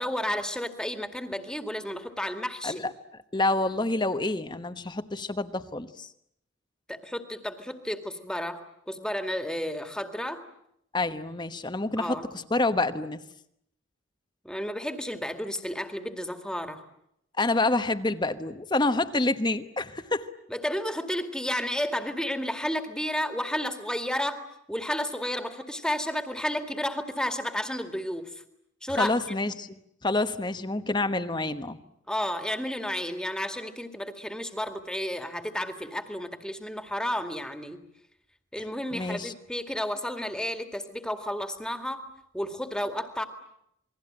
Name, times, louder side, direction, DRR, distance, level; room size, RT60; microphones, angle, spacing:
voice 1, 0.0-2.9 6.9-8.6 8.9-10.4 12.0-12.3 14.4-16.8 20.5-24.4 24.7-28.4 28.8-29.1 32.1-37.8 38.5-42.0 42.3-43.2, equal, 5° left, 7 dB, 2.1 m, -32 dB
voice 2, 2.6-6.1 10.9-13.2 17.4-20.3 29.0-31.8 38.9-39.3, left 2 dB, 25° left, 10 dB, 1.1 m, -28 dB
28.5 x 21.0 x 8.9 m, 0.76 s
head